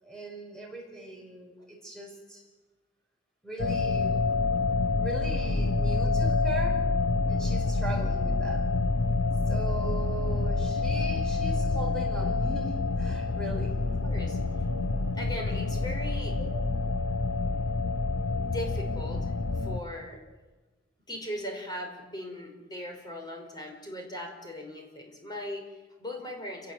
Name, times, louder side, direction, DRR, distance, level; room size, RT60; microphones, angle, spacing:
voice 1, 0.0-2.4 3.4-4.2 5.0-6.8 7.3-8.6 9.5-13.8 16.4-16.6, right 2 dB, 5° left, 0 dB, 6.1 m, -39 dB
sound 1, 3.6-19.8, left 3 dB, 80° left, 1.0 m, -27 dB
voice 2, 14.0-14.4 15.2-16.4 18.4-20.2 21.1-26.7, left 1 dB, 20° left, 2 dB, 5.3 m, -39 dB
29.0 x 18.5 x 8.1 m, 1.2 s
head